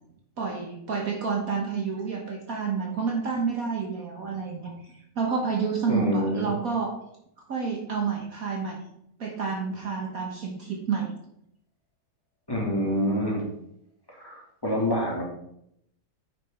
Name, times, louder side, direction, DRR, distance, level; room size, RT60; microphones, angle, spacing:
voice 1, 0.4-4.7 5.1-6.9 7.5-8.8 9.2-11.1, right 5 dB, 55° right, 1 dB, 1.6 m, -29 dB
voice 2, 5.9-6.5 12.5-13.5 14.1-15.2, equal, 15° left, -4 dB, 2.5 m, -27 dB
8.8 x 6.1 x 4.4 m, 0.74 s
omnidirectional pair, 1.9 m